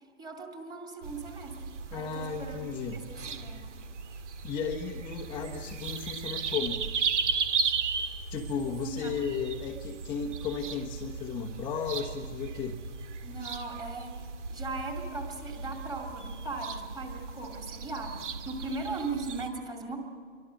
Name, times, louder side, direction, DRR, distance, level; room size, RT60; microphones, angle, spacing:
voice 1, 0.2-3.7 8.8-9.1 13.2-14.2 14.5-20.0, right 3 dB, 10° right, 2 dB, 2.5 m, -38 dB
sound 1, 1.0-19.5, right 5 dB, 60° right, 2.1 m, -36 dB
voice 2, 1.9-3.0 4.4-6.8 8.3-12.8, left 6 dB, 10° left, -2 dB, 1.1 m, -34 dB
27.5 x 23.5 x 6.5 m, 2.1 s
hypercardioid pair, 145°, 40 cm